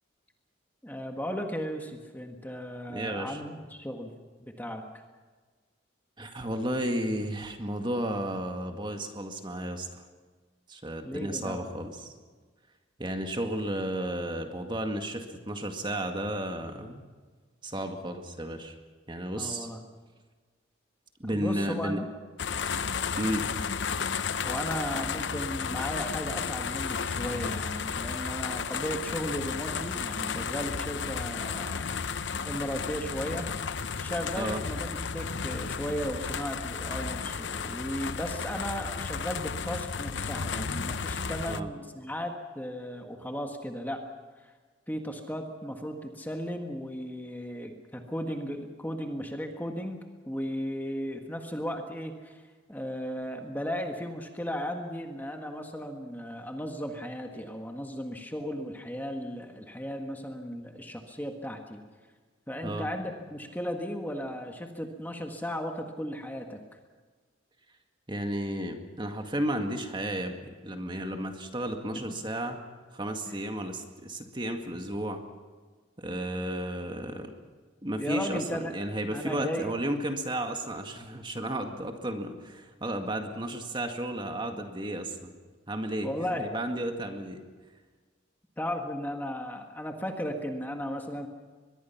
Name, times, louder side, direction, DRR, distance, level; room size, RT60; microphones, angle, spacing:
voice 1, 0.8-4.1 4.4-4.8 11.0-11.6 19.3-19.8 21.3-22.0 24.4-31.8 32.4-33.5 34.0-44.0 44.4-44.5 44.9-52.4 52.7-61.8 62.5-66.8 73.3-73.4 78.0-78.8 79.1-79.7 81.4-81.5 86.0-86.5 88.6-91.3, equal, 10° left, 4 dB, 1.6 m, -35 dB
voice 2, 2.9-3.4 6.2-10.0 10.7-12.1 13.0-17.0 17.6-18.8 19.1-19.7 21.2-22.0 23.2-23.5 34.4-34.6 41.4-41.7 62.6-62.9 68.1-72.6 72.9-75.2 76.0-77.3 77.8-78.4 78.7-85.3 85.7-87.4, right 1 dB, 25° right, 5 dB, 2.0 m, -33 dB
sound 1, 22.4-41.6, left 6 dB, 65° left, 0.8 m, -33 dB
24.0 x 21.5 x 5.9 m, 1.4 s
head